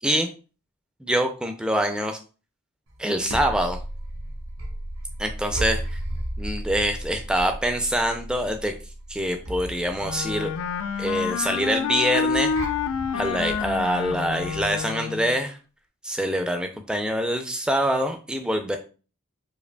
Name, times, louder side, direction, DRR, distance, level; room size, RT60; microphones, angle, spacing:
voice 1, 1.0-2.2 3.0-3.8 5.2-6.0 6.4-8.7 9.1-10.5 11.0-12.5 13.1-15.6 16.0-18.8, equal, 5° right, 5 dB, 0.3 m, -25 dB
sound 1, 2.9-14.8, right 1 dB, 85° right, 1.0 m, -35 dB
Wind instrument woodwind instrument, 10.0-15.4, left 6 dB, 75° left, 0.3 m, -28 dB
4.9 x 2.6 x 2.2 m, 0.36 s
head